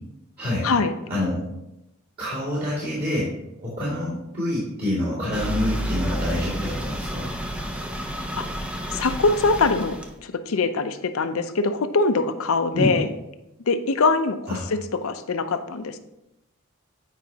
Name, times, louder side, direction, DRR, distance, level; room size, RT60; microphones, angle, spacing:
voice 1, 0.4-0.7 1.1-1.4 2.2-7.3 12.7-12.9 14.5-14.6, left 1 dB, 45° right, -12 dB, 2.6 m, -27 dB
sound 1, 5.3-10.2, right 1 dB, 5° right, 0.5 m, -30 dB
voice 2, 8.9-13.1 13.7-14.6 15.0-16.0, left 3 dB, 70° left, 10 dB, 0.5 m, -23 dB
9.1 x 4.9 x 2.8 m, 0.88 s
head